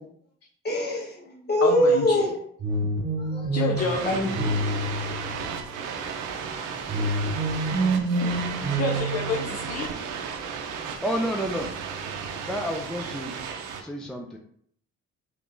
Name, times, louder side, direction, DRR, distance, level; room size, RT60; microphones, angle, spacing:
voice 1, 0.6-2.4 3.2-3.5 4.0-4.7 8.5-8.6, equal, 35° left, -2 dB, 1.3 m, -24 dB
voice 2, 1.6-2.3 3.5-4.0 8.2-8.5 8.8-9.9, left 4 dB, 55° left, 1 dB, 0.5 m, -29 dB
sound 1, 2.6-5.7 6.9-9.8, right 2 dB, 40° right, 1.0 m, -28 dB
sound 2, 3.8-13.8, right 6 dB, 85° right, 0.5 m, -34 dB
voice 3, 11.0-11.7 12.4-13.4 13.8-14.4, equal, ahead, 2 dB, 0.3 m, -30 dB
3.6 x 3.0 x 2.5 m, 0.64 s
cardioid pair, 90°, 30 cm